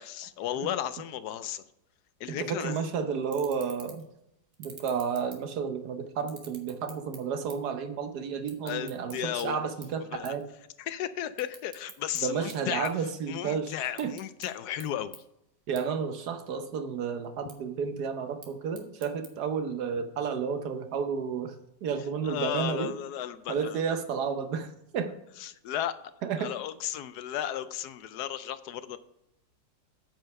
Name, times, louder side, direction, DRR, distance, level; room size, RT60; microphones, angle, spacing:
voice 1, 0.0-1.6 2.2-2.8 8.6-9.6 10.1-10.3 10.8-15.2 22.2-24.0 25.4-25.9 26.4-29.0, left 11 dB, 70° left, 13 dB, 1.0 m, -34 dB
voice 2, 2.3-4.0 4.6-10.4 12.2-13.7 14.0-14.1 15.7-21.5 21.8-22.9 23.5-24.7 24.9-25.1 26.2-26.5, right 6 dB, 65° right, 8 dB, 1.3 m, -31 dB
sound 1, 2.7-2.8 3.2-4.1 4.5-5.8 6.2-7.8 8.0-9.4 9.8-10.0 10.2-10.4 10.8-12.2 12.5-13.5 13.8-14.5 14.8-14.9 15.1-15.2 15.8-15.9 16.2-16.8 17.2-17.5 18.2-19.3, right 5 dB, 50° right, 1.6 m, -48 dB
8.8 x 5.5 x 5.4 m, 0.81 s
omnidirectional pair, 1.9 m